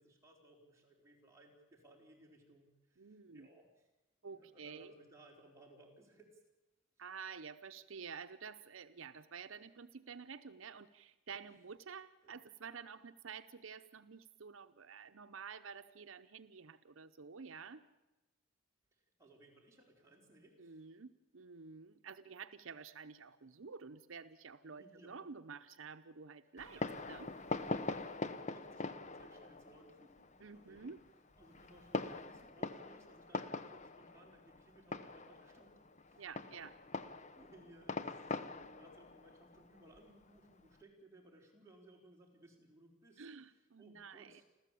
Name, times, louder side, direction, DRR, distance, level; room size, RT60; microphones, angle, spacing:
voice 1, 0.0-3.9 4.2-6.4 12.2-12.4 18.9-20.8 24.7-25.2 26.7-27.4 27.6-30.2 30.5-30.9 31.4-35.8 36.1-36.2 37.4-43.2 43.5-44.4, right 1 dB, 15° right, -2 dB, 4.8 m, -62 dB
voice 2, 3.0-3.5 4.2-4.9 7.0-17.8 20.6-26.8 27.1-27.3 30.4-31.0 36.2-36.8 43.2-44.4, right 5 dB, 80° right, 10 dB, 0.8 m, -50 dB
Fireworks, 26.6-40.7, left 3 dB, 35° left, 0.9 m, -43 dB
29.5 x 13.5 x 8.5 m, 1.1 s
head